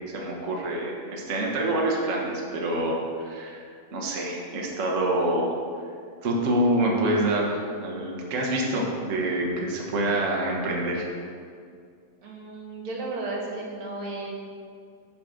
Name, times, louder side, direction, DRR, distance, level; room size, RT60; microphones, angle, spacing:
voice 1, 0.1-5.5 6.2-11.1, right 1 dB, 75° right, -2 dB, 0.7 m, -26 dB
voice 2, 12.2-14.3, right 2 dB, 50° right, -2 dB, 1.9 m, -34 dB
11.0 x 4.4 x 6.5 m, 2.2 s
omnidirectional pair, 3.7 m